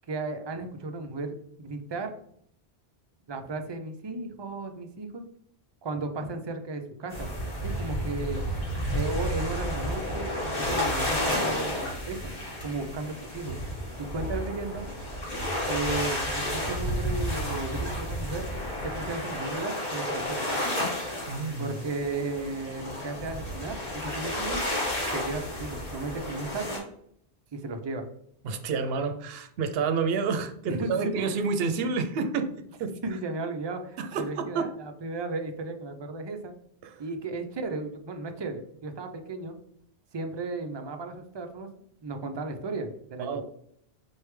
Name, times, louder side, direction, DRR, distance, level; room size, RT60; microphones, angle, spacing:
voice 1, 0.1-2.1 3.3-5.2 5.8-7.3 7.6-8.4 8.9-12.3 12.6-13.6 14.0-14.9 15.7-18.5 18.8-20.4 21.6-24.6 25.1-26.8 27.5-28.1 30.6-31.4 33.0-36.5 37.0-39.6 40.1-41.7 42.0-43.4, right 3 dB, 40° right, 6 dB, 0.3 m, -35 dB
sound 1, 7.1-26.8, left 1 dB, 45° left, 1.7 m, -31 dB
voice 2, 21.3-21.7 28.4-32.5 32.8-32.9 34.0-34.7 36.8-37.0 43.2-43.4, right 5 dB, 70° right, 7 dB, 0.8 m, -29 dB
4.5 x 3.3 x 3.1 m, 0.69 s
omnidirectional pair, 1.1 m